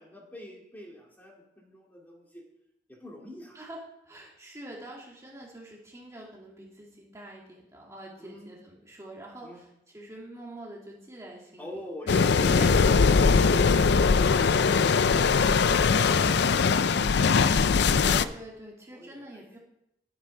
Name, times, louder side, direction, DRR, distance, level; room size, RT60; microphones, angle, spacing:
voice 1, 0.0-2.4 2.9-3.6 8.2-8.5 9.4-9.6 11.6-12.7 18.9-19.4, left 1 dB, 10° left, -2 dB, 2.5 m, -45 dB
voice 2, 3.5-12.8 13.9-14.2 17.9-19.6, right 1 dB, 15° right, -3 dB, 1.8 m, -45 dB
sound 1, 12.1-18.2, left 5 dB, 65° left, 0.5 m, -21 dB
10.5 x 8.0 x 5.6 m, 0.81 s
head